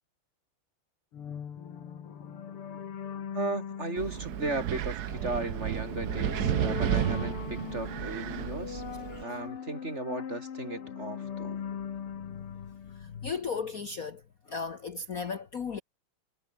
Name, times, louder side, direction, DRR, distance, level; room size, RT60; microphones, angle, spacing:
sound 1, 1.1-13.6, left 8 dB, 80° left, 2.8 m, -40 dB
voice 1, 3.3-8.8 9.2-11.6, right 2 dB, 30° right, 3.5 m, -36 dB
Wind, 4.0-9.2, right 11 dB, 60° right, 1.1 m, -32 dB
voice 2, 12.9-14.2 14.5-15.8, left 5 dB, 45° left, 1.5 m, -36 dB
omnidirectional pair, 2.4 m